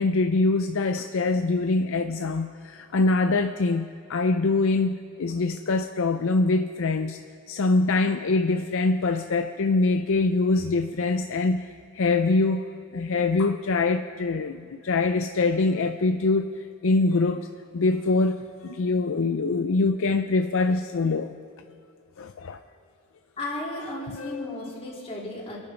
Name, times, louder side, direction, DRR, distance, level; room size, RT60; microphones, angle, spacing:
voice 1, 0.0-7.2 7.5-12.7 12.9-17.5 17.7-21.4 22.2-22.6 24.2-24.6, left 3 dB, 60° left, 8 dB, 0.5 m, -24 dB
voice 2, 23.4-25.6, left 1 dB, 25° left, -4 dB, 3.6 m, -34 dB
27.5 x 10.5 x 4.5 m, 2.4 s
head